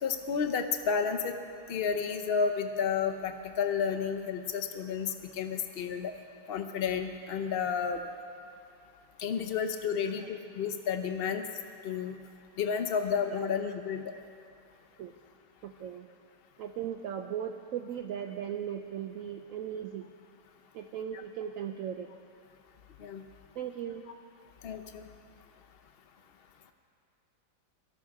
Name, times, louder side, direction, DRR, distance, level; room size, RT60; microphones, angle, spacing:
voice 1, 0.0-1.4 1.7-6.1 6.5-8.0 9.2-11.4 11.8-12.2 12.6-14.1 23.0-23.2 24.6-25.0, left 6 dB, 85° left, 6 dB, 0.5 m, -31 dB
voice 2, 10.0-10.4 13.2-13.7 14.1-14.2 15.0-15.2 15.6-16.1 16.6-20.1 20.7-22.1 23.6-24.0, right 9 dB, 75° right, 6 dB, 0.7 m, -38 dB
18.0 x 13.0 x 4.8 m, 2.4 s
omnidirectional pair, 2.0 m